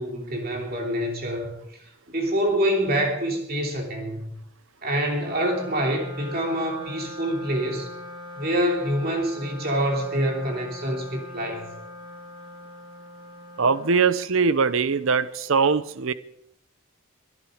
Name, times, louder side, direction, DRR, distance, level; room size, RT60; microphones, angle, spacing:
voice 1, 0.0-1.8 2.1-4.3 4.8-7.9 8.4-11.7, equal, 45° right, 1 dB, 3.0 m, -26 dB
Wind instrument woodwind instrument, 5.2-14.7, left 1 dB, 20° right, 3.9 m, -41 dB
voice 2, 13.6-16.1, right 5 dB, 65° right, 15 dB, 0.7 m, -21 dB
23.5 x 11.0 x 5.0 m, 0.76 s
head